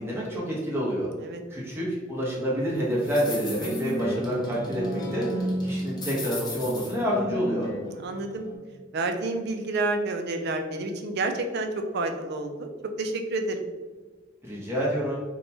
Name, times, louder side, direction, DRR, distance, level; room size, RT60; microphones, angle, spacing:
voice 1, 0.0-1.1 1.5-5.3 5.6-7.7 14.4-15.2, equal, 15° right, -6 dB, 0.9 m, -28 dB
sound 1, 2.7-8.6, equal, 20° left, 0.6 m, -34 dB
voice 2, 7.7-8.5 8.9-12.7 13.0-13.7, right 2 dB, 60° right, 5 dB, 0.4 m, -29 dB
2.8 x 2.2 x 4.1 m, 1.3 s
head